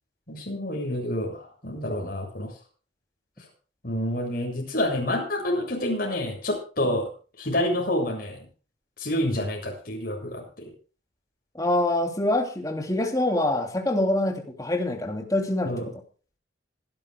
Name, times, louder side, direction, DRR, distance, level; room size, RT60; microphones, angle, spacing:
voice 1, 0.3-2.5 3.8-7.1 7.4-8.4 9.0-10.7 15.6-15.9, left 1 dB, 50° left, 1 dB, 7.2 m, -28 dB
voice 2, 11.5-15.7, left 1 dB, 20° left, 3 dB, 2.8 m, -25 dB
26.0 x 11.5 x 2.3 m, 0.37 s
head